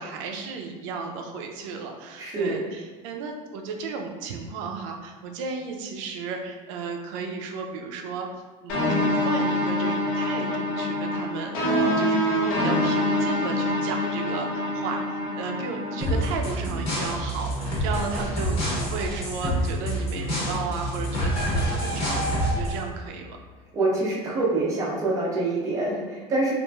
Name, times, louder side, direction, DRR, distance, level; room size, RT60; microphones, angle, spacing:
voice 1, 0.0-8.3 8.6-23.4, right 4 dB, 85° right, 3 dB, 0.4 m, -34 dB
voice 2, 2.2-2.6 23.7-26.5, right 2 dB, 20° right, -5 dB, 0.5 m, -25 dB
sound 1, 8.7-16.3, left 1 dB, 55° left, 0.6 m, -25 dB
sound 2, 16.0-22.8, equal, 40° left, 0.9 m, -27 dB
3.0 x 2.4 x 2.2 m, 1.3 s
cardioid pair, 175°, 16 cm